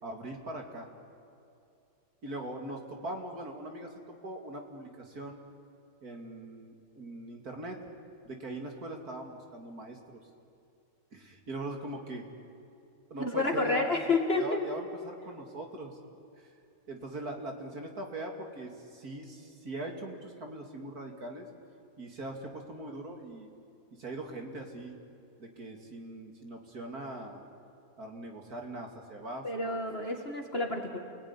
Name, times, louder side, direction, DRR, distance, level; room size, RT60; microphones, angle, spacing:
voice 1, 0.0-0.9 2.2-3.9 4.2-5.4 6.0-7.8 8.2-10.2 11.1-12.3 13.1-16.0 16.4-16.5 16.9-21.5 22.0-23.5 24.0-25.0 25.4-27.4 28.0-29.8, right 2 dB, 50° right, 2 dB, 2.9 m, -41 dB
voice 2, 13.2-14.7 29.4-31.0, left 3 dB, 30° left, 2 dB, 2.2 m, -29 dB
29.5 x 19.5 x 9.7 m, 2.6 s
omnidirectional pair, 2.1 m